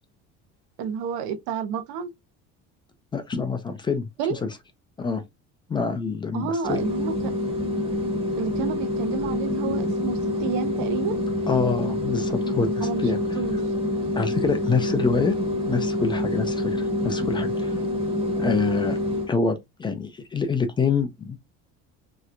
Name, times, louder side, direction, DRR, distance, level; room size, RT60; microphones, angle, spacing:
voice 1, 0.8-2.1 4.2-4.4 6.3-7.3 8.4-11.2 12.8-13.6, right 7 dB, 80° right, 0.7 m, -30 dB
voice 2, 3.1-4.5 5.0-5.2 5.7-6.8 11.5-13.4 14.2-15.3 15.7-17.7 18.4-19.0 19.3-21.4, left 4 dB, 15° left, 0.3 m, -26 dB
sound 1, 6.6-19.3, left 1 dB, 20° right, 0.8 m, -26 dB
3.2 x 2.9 x 2.4 m
cardioid pair, 155°, 29 cm